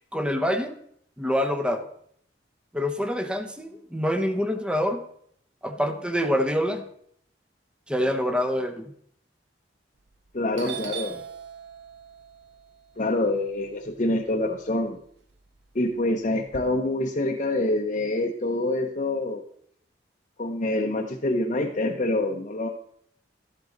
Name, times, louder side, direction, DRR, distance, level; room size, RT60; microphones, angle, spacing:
voice 1, 0.1-0.7 1.2-1.9 2.7-5.0 5.6-6.8 7.9-8.9 10.7-10.8, equal, 5° right, 7 dB, 0.9 m, -26 dB
Doorbell, 10.0-10.3 10.6-14.7 15.1-16.6, right 8 dB, 80° right, 0.8 m, -41 dB
voice 2, 10.3-11.2 13.0-15.0 15.7-19.4 20.4-22.7, left 2 dB, 40° left, 0 dB, 0.8 m, -26 dB
12.5 x 7.9 x 3.9 m, 0.67 s
head